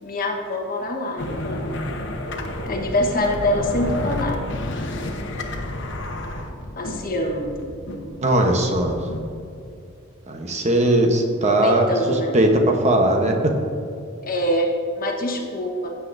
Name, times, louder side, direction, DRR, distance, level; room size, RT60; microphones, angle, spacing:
voice 1, 0.0-1.8 2.6-4.4 6.8-7.5 11.5-12.3 14.2-16.0, left 1 dB, 45° left, 2 dB, 1.2 m, -25 dB
sound 1, 1.2-9.6, left 1 dB, 60° left, 1.0 m, -31 dB
voice 2, 8.2-9.1 10.3-13.5, right 1 dB, 35° right, 3 dB, 1.0 m, -19 dB
16.0 x 8.2 x 2.6 m, 2.5 s
head